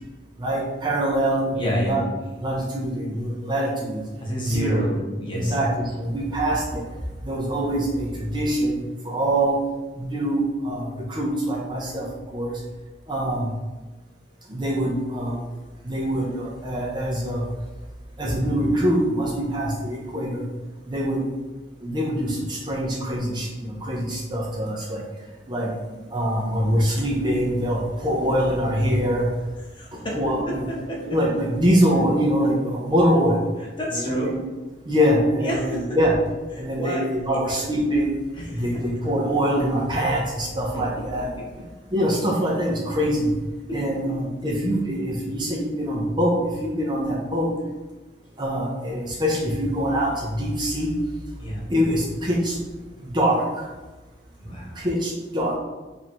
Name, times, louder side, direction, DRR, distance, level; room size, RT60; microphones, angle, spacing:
voice 1, 0.4-2.0 2.4-4.0 4.4-4.8 5.3-6.8 7.2-9.6 10.0-12.6 13.1-13.5 14.5-15.4 15.8-17.4 18.2-20.4 20.9-21.2 21.8-25.0 25.5-25.7 26.1-29.3 29.9-30.6 31.0-33.4 33.9-34.4 34.9-36.1 36.6-38.1 38.5-41.3 41.9-43.3 43.7-47.5 48.4-50.9 51.7-52.6 53.0-53.7 54.8-55.6, equal, 25° right, -3 dB, 0.6 m, -24 dB
voice 2, 1.5-2.0 4.2-5.6 29.7-30.2 30.4-31.0 33.8-34.3 35.4-36.0 36.7-37.0 37.3-37.4 38.3-38.8 40.7-40.8 43.7-43.8 51.4-51.7 54.4-54.7, equal, 30° left, -4 dB, 0.9 m, -29 dB
3.0 x 2.7 x 4.3 m, 1.2 s
head